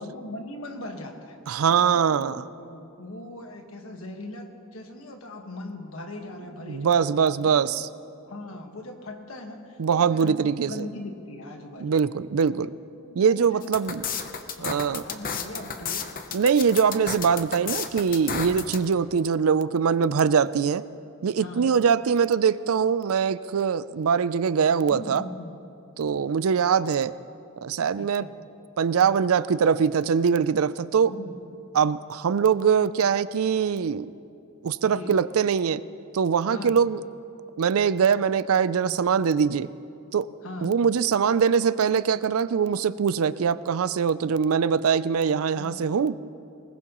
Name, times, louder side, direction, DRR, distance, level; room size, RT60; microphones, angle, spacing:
voice 1, 0.0-1.4 1.6-7.1 7.4-7.7 8.2-12.0 13.0-16.1 18.5-18.8 21.4-21.7 24.9-25.6 28.0-28.4 31.1-31.4 34.8-35.2 36.5-36.8 40.4-40.7 45.5-45.9, left 1 dB, 70° left, 4 dB, 1.5 m, -40 dB
voice 2, 1.5-2.4 6.7-7.8 9.8-10.9 11.8-12.7 13.2-14.0 14.6-15.0 16.3-20.8 21.2-25.2 26.0-27.1 27.6-28.3 28.8-31.1 31.8-34.1 34.6-35.8 36.1-37.0 37.6-39.7 40.1-40.3 40.6-46.2, right 6 dB, 75° right, 16 dB, 0.4 m, -22 dB
sound 1, 13.6-18.8, left 6 dB, 40° left, 0.8 m, -32 dB
20.5 x 20.0 x 3.0 m, 2.6 s
head